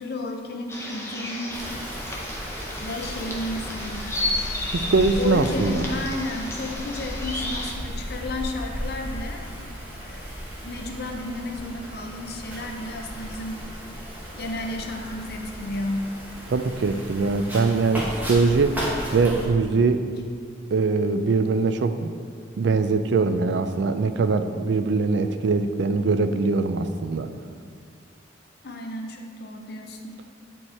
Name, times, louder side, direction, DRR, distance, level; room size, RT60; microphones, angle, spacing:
voice 1, 0.0-1.6 2.8-4.2 5.2-9.4 10.0-10.3 10.6-13.6 14.4-16.1 28.6-30.2, left 2 dB, 55° left, 3 dB, 0.7 m, -32 dB
sound 1, 0.7-7.7, left 1 dB, 15° left, 0.7 m, -33 dB
Wind, 1.5-19.5, equal, 10° right, 1.1 m, -35 dB
voice 2, 4.7-5.8 16.5-18.8 19.1-20.0 20.7-22.1 22.6-27.3, right 4 dB, 65° right, 10 dB, 0.4 m, -22 dB
8.0 x 4.5 x 4.2 m, 2.2 s
head